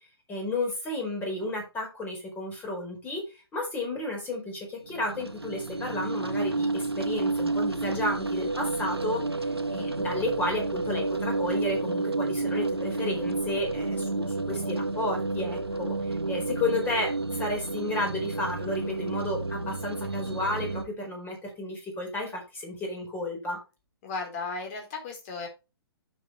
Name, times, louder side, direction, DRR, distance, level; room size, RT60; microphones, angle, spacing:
voice 1, 0.3-9.2 9.7-23.6, left 2 dB, 15° left, 1 dB, 4.5 m, -32 dB
sound 1, 4.9-20.8, right 3 dB, 80° right, 1.3 m, -30 dB
voice 2, 24.0-25.5, left 4 dB, 35° left, 3 dB, 3.9 m, -35 dB
9.5 x 7.4 x 3.2 m, 0.28 s
figure-of-eight pair, 120°, 13 cm